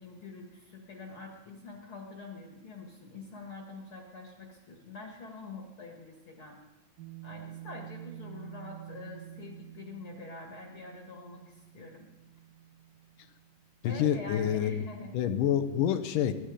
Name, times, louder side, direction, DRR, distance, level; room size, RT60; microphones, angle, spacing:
voice 1, 0.0-6.6 7.2-12.1 13.8-15.2, left 3 dB, 45° left, 1 dB, 2.3 m, -45 dB
sound 1, 7.0-13.7, right 13 dB, 70° right, 2.6 m, -48 dB
voice 2, 13.8-14.9 15.1-16.3, left 9 dB, 75° left, 10 dB, 2.3 m, -27 dB
22.5 x 11.0 x 5.1 m, 1.1 s
omnidirectional pair, 4.2 m